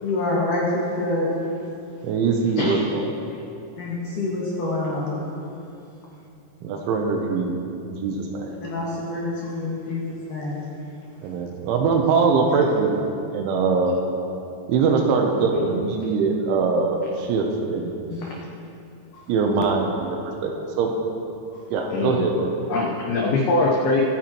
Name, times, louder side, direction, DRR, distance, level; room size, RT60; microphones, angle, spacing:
voice 1, 0.0-1.3 3.8-5.2 8.6-10.6 12.5-12.6 18.1-18.3 19.1-19.2, left 2 dB, 50° left, -6 dB, 2.7 m, -27 dB
voice 2, 2.0-3.0 6.6-7.6 7.9-8.5 11.2-12.9 13.3-13.9 14.7-18.0 19.3-20.5 20.8-20.9 21.7-22.6, right 4 dB, 75° right, 2 dB, 3.1 m, -22 dB
voice 3, 2.6-2.9 15.6-15.7 18.2-18.3 21.9-22.3 22.7-24.0, left 2 dB, 80° left, -3 dB, 2.2 m, -23 dB
24.0 x 9.2 x 3.1 m, 2.7 s
omnidirectional pair, 5.9 m